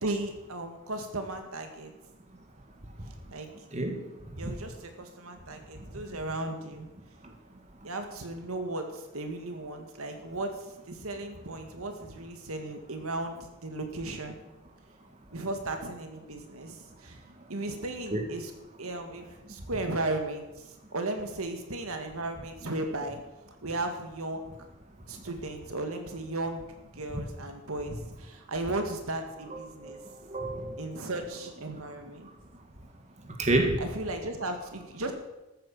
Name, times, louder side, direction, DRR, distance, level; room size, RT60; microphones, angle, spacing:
voice 1, 0.0-1.9 3.3-3.5 4.4-6.9 7.8-10.5 10.9-13.4 13.6-14.4 15.3-17.2 17.5-18.5 18.8-23.2 23.6-24.5 25.1-26.6 26.9-30.0 30.8-32.3 33.8-35.1, right 2 dB, 80° right, 5 dB, 2.0 m, -35 dB
voice 2, 29.5-30.9 33.4-33.8, right 2 dB, 30° right, 3 dB, 1.7 m, -29 dB
13.5 x 9.0 x 7.2 m, 1.0 s
head